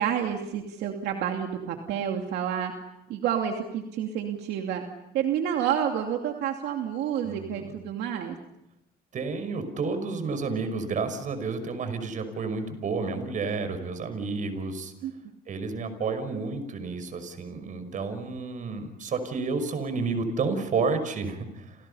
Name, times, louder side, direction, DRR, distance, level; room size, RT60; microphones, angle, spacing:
voice 1, 0.0-2.7 3.1-4.8 5.1-8.4 15.0-15.1, right 9 dB, 80° right, 3 dB, 2.7 m, -29 dB
voice 2, 7.2-7.7 9.1-14.9 15.5-21.8, right 4 dB, 50° right, 10 dB, 5.9 m, -30 dB
30.0 x 29.5 x 5.7 m, 0.84 s
cardioid pair, 110°, 17 cm